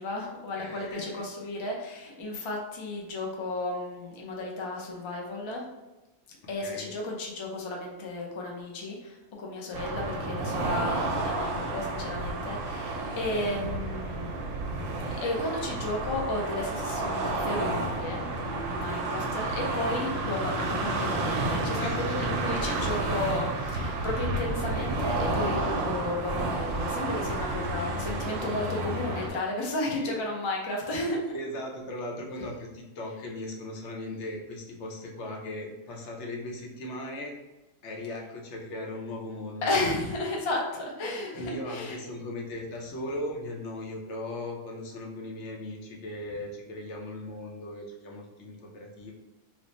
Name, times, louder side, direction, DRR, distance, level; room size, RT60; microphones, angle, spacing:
voice 1, 0.0-5.6 6.5-14.6 15.2-31.3 32.4-32.5 39.6-42.0, left 2 dB, 40° left, -1 dB, 0.4 m, -33 dB
voice 2, 0.5-1.0 6.6-6.9 21.8-22.9 29.9-30.1 31.3-37.3 37.8-39.7 41.3-49.1, left 1 dB, 65° left, 0 dB, 0.9 m, -38 dB
sound 1, 9.7-29.3, right 2 dB, 80° right, 1.0 m, -31 dB
3.0 x 2.1 x 4.0 m, 1.1 s
omnidirectional pair, 1.3 m